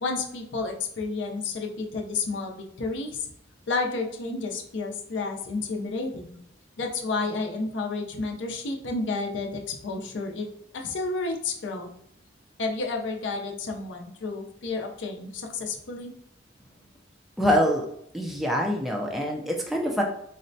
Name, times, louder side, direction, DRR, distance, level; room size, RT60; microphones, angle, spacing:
voice 1, 0.0-3.3 3.7-6.4 6.8-10.5 10.7-11.9 12.6-16.1, left 3 dB, 70° left, 1 dB, 0.5 m, -31 dB
voice 2, 17.4-17.9 18.1-20.0, equal, ahead, -1 dB, 0.3 m, -25 dB
4.1 x 2.1 x 2.5 m, 0.74 s
head